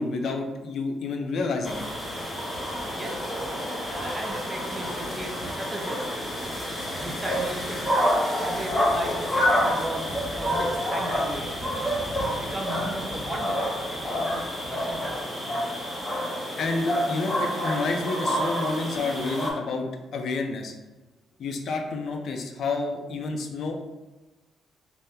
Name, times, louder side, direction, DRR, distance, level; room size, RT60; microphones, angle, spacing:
voice 1, 0.0-1.8 16.6-19.9 20.1-20.7 21.4-23.8, left 3 dB, 65° left, 4 dB, 0.4 m, -29 dB
sound 1, 1.6-19.5, equal, 20° left, 0.9 m, -28 dB
voice 2, 2.9-3.6 3.9-6.2 6.8-8.1 8.4-15.5 18.6-18.7, right 1 dB, 25° right, 2 dB, 0.5 m, -37 dB
2.8 x 2.0 x 3.5 m, 1.1 s
cardioid pair, 90°, 0 cm